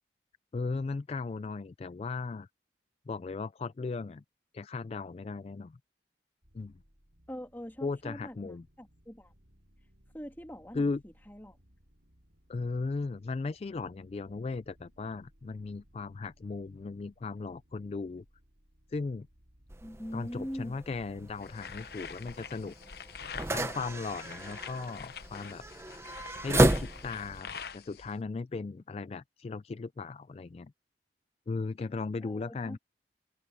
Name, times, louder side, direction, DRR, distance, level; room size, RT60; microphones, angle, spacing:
voice 1, 0.5-2.5 3.1-4.2 4.5-5.8 6.5-6.7 7.8-8.7 10.7-11.0 12.5-18.2 18.9-19.3 20.1-22.7 23.5-25.6 26.4-30.7 31.5-32.8, left 4 dB, 35° left, 0.3 m, -37 dB
sound 1, 6.4-23.1, equal, 65° right, 6.3 m, -64 dB
voice 2, 7.3-9.3 10.1-10.9 11.3-11.6 19.8-20.8 32.2-32.8, equal, 10° left, 2.9 m, -42 dB
sound 2, 19.7-27.4, right 1 dB, 15° right, 0.8 m, -33 dB
sound 3, 21.4-28.1, left 6 dB, 60° left, 0.9 m, -46 dB
open air
head